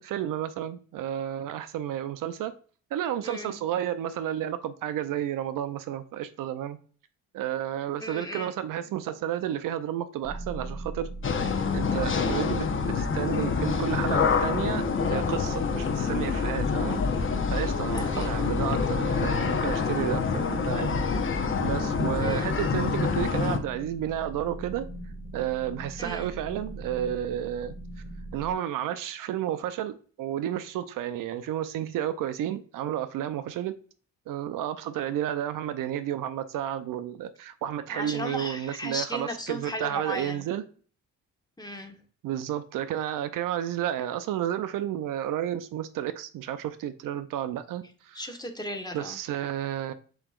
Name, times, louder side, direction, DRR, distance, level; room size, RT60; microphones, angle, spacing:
voice 1, 0.0-2.5 2.9-6.8 7.3-11.1 11.4-24.9 25.3-27.7 28.3-33.8 34.3-40.6 42.2-48.2 48.9-49.9, right 11 dB, 65° right, 0.5 m, -32 dB
voice 2, 3.2-3.5 8.0-8.5 17.9-18.7 22.2-22.5 26.0-26.3 37.9-40.5 41.6-42.0 48.1-49.2, equal, 10° left, 1.1 m, -36 dB
sound 1, 10.2-28.5, right 1 dB, 35° right, 2.2 m, -41 dB
sound 2, 11.2-23.6, left 5 dB, 35° left, 0.8 m, -27 dB
7.3 x 3.0 x 2.4 m
supercardioid pair, 70°, 35 cm